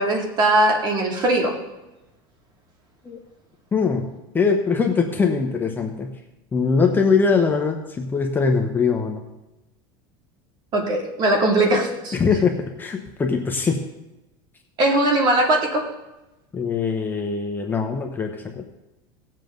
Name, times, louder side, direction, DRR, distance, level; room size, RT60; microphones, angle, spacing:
voice 1, 0.0-1.5 10.7-12.1 14.8-15.9, right 1 dB, 35° right, 1 dB, 2.7 m, -20 dB
voice 2, 3.7-6.1 6.5-9.2 12.1-13.8 16.5-18.7, left 5 dB, 15° left, 3 dB, 1.0 m, -22 dB
18.5 x 7.5 x 3.9 m, 0.99 s
supercardioid pair, 135°, 12 cm